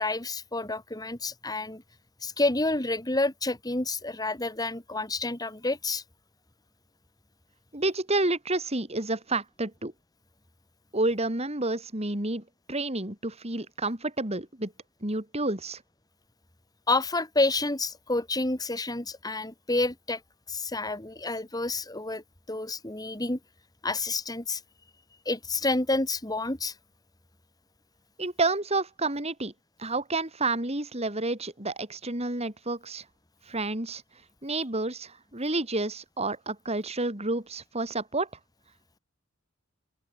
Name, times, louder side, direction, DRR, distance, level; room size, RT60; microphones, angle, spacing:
voice 1, 0.0-1.8 2.2-6.0 16.9-20.2 20.5-22.2 22.5-23.4 23.8-24.6 25.3-26.7, left 2 dB, 20° left, 2.2 m, -29 dB
voice 2, 7.7-9.9 10.9-14.7 15.0-15.8 28.2-29.5 29.8-33.0 33.5-34.0 34.4-38.3, right 2 dB, 30° right, 3.6 m, -30 dB
open air
head